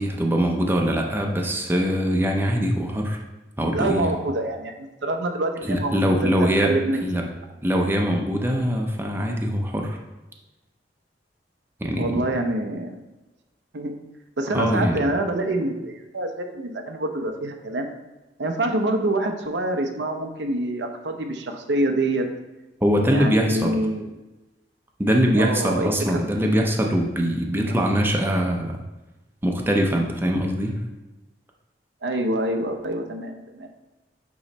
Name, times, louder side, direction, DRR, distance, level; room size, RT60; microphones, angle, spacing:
voice 1, 0.0-3.2 3.6-4.2 5.7-6.7 7.0-7.2 7.6-10.0 11.8-12.2 14.5-15.0 22.8-23.8 25.0-28.8 29.4-30.7, equal, 15° right, 1 dB, 0.7 m, -22 dB
voice 2, 3.7-7.3 12.0-13.0 13.7-14.0 14.4-17.9 18.4-22.3 23.1-24.1 25.4-26.2 27.5-27.7 32.0-33.7, right 1 dB, 85° right, 4 dB, 0.7 m, -26 dB
8.4 x 3.1 x 4.2 m, 1.1 s
head